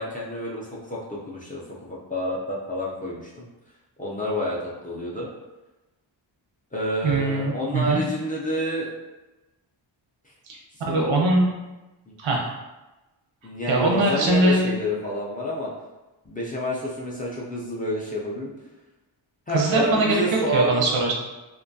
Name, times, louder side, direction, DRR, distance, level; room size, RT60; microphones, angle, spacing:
voice 1, 0.0-3.5 4.0-5.3 6.7-8.9 10.9-11.2 12.1-12.2 13.4-15.7 16.3-18.5 19.5-20.8, equal, 20° left, -5 dB, 0.3 m, -29 dB
voice 2, 7.0-8.0 10.5-11.5 12.2-12.4 13.7-14.7 19.5-20.2 20.5-21.1, right 2 dB, 90° right, -1 dB, 0.7 m, -22 dB
2.5 x 2.2 x 2.6 m, 1.1 s
wide cardioid pair, 145°, 45 cm